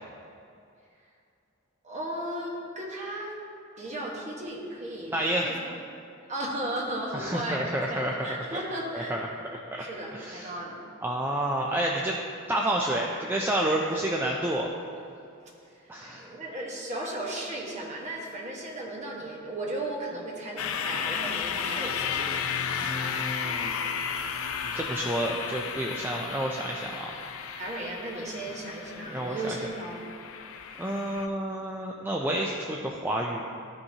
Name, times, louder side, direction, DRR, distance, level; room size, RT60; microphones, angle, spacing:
voice 1, 1.8-3.4 3.8-5.8 6.3-9.1 9.7-10.8 16.0-22.4 27.6-30.1, right 1 dB, 35° right, -2 dB, 1.3 m, -35 dB
voice 2, 5.1-5.5 7.1-8.6 8.9-9.3 9.5-9.9 10.1-10.5 11.0-12.2 12.5-14.7 15.9-16.3 22.8-23.8 24.6-27.2 29.0-29.6 30.8-33.5, right 1 dB, 10° right, -1 dB, 0.4 m, -30 dB
sound 1, 20.6-31.3, left 7 dB, 70° left, 0.5 m, -33 dB
13.5 x 5.3 x 2.8 m, 2.4 s
head